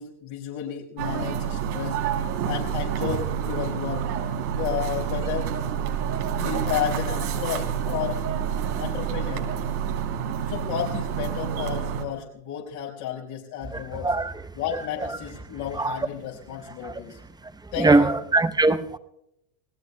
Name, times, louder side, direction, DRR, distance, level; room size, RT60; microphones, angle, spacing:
voice 1, 0.0-2.0 2.4-4.1 4.5-5.5 6.4-8.2 8.8-9.5 10.5-14.1 14.5-17.2 17.7-18.2, left 10 dB, 70° left, 4.7 m, -32 dB
sound 1, 1.0-12.1, right 8 dB, 80° right, 3.2 m, -28 dB
voice 2, 13.7-14.3 15.8-16.0 16.8-16.9 17.8-19.0, right 2 dB, 10° right, 0.7 m, -21 dB
29.0 x 19.0 x 2.2 m
supercardioid pair, 105°, 44 cm